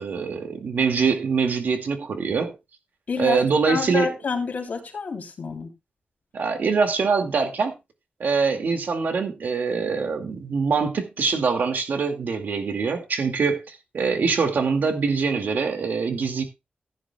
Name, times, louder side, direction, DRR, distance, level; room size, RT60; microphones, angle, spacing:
voice 1, 0.0-2.5 3.2-4.1 6.3-7.7 8.2-16.4, right 5 dB, 75° right, 2.2 m, -24 dB
voice 2, 3.1-5.7, left 5 dB, 60° left, 3.2 m, -28 dB
15.5 x 10.5 x 2.3 m
wide cardioid pair, 165°, 3 cm